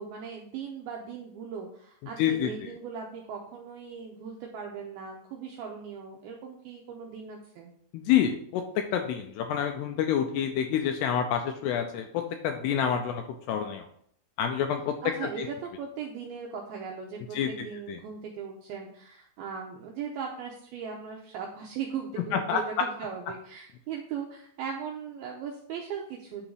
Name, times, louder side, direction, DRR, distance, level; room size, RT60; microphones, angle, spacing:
voice 1, 0.0-7.7 15.0-26.5, right 6 dB, 85° right, 0 dB, 2.2 m, -38 dB
voice 2, 2.2-2.5 7.9-13.8 14.4-14.9 17.4-17.5 22.3-22.6, left 9 dB, 85° left, 5 dB, 2.4 m, -27 dB
9.4 x 3.9 x 4.6 m, 0.65 s
omnidirectional pair, 5.3 m